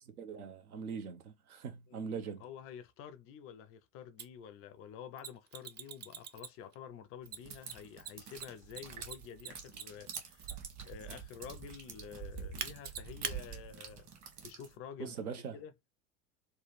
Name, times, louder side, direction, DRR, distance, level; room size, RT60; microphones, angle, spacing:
voice 1, 0.2-2.4 15.0-15.6, right 6 dB, 80° right, 0.8 m, -41 dB
voice 2, 2.4-14.1 14.4-15.2 15.5-15.7, left 8 dB, 35° left, 0.4 m, -49 dB
Mechanisms, 4.2-4.3 5.2-6.7 7.3-10.8 12.6-13.4, right 7 dB, 25° right, 0.4 m, -42 dB
sound 1, 7.3-14.7, right 7 dB, 40° right, 1.2 m, -47 dB
3.2 x 2.2 x 3.1 m
figure-of-eight pair, 80°, 43 cm